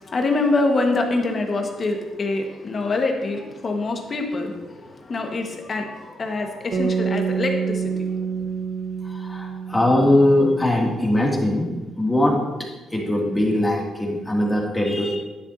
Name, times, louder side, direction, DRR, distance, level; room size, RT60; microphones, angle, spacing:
voice 1, 0.0-8.5, left 2 dB, 40° left, 3 dB, 1.6 m, -25 dB
sound 1, 6.7-10.9, right 6 dB, 50° right, 1.0 m, -27 dB
voice 2, 9.0-11.7 12.0-15.2, left 1 dB, 15° left, -2 dB, 2.6 m, -21 dB
10.5 x 10.0 x 2.8 m, 1.1 s
cardioid pair, 90°, 0 cm